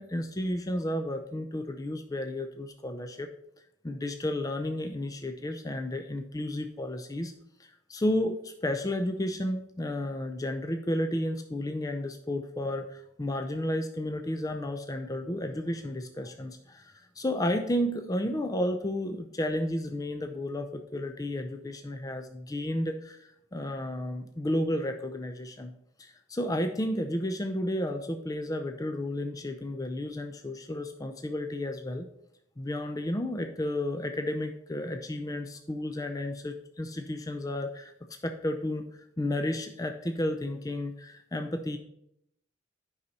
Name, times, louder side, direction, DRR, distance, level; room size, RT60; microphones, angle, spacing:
voice 1, 0.0-3.3 3.8-7.3 7.6-25.7 26.0-32.0 32.6-37.9 38.2-38.9 39.2-41.8, left 1 dB, 20° left, 6 dB, 0.4 m, -32 dB
9.5 x 5.5 x 4.1 m, 0.76 s
head